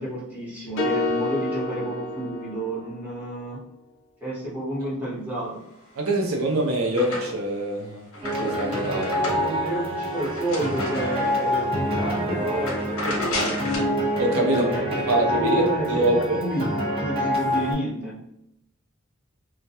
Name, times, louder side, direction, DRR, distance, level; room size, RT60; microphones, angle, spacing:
voice 1, 0.0-3.6 4.2-5.6 9.2-13.6 14.5-16.6 17.0-18.2, right 1 dB, 10° right, -8 dB, 0.9 m, -30 dB
sound 1, 0.8-3.1, left 2 dB, 60° left, 0.5 m, -28 dB
voice 2, 5.9-8.1 8.4-9.3 14.2-14.7 15.1-15.6 15.9-16.4, right 1 dB, 75° right, 0 dB, 0.5 m, -24 dB
sound 2, 6.0-7.6 8.0-11.6 12.0-12.2 12.5-14.0, left 1 dB, 80° left, 0.8 m, -33 dB
sound 3, 8.2-17.7, equal, 25° right, 0.4 m, -26 dB
2.2 x 2.1 x 2.8 m, 0.83 s
head